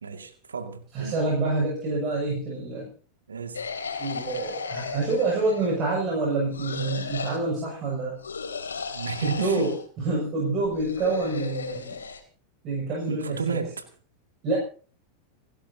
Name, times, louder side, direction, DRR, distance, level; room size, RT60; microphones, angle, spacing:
voice 1, 0.0-1.2 3.3-3.7 8.9-9.7 13.1-13.8, right 5 dB, 70° right, 2.1 m, -33 dB
voice 2, 0.9-2.9 4.0-8.2 9.2-12.0 12.6-13.6 14.4-14.6, right 3 dB, 35° right, 6.4 m, -27 dB
sound 1, 3.5-5.8 6.5-7.4 8.2-9.8 10.7-12.2, left 5 dB, 70° left, 3.1 m, -35 dB
29.5 x 11.5 x 2.8 m
figure-of-eight pair, 90°, 0 cm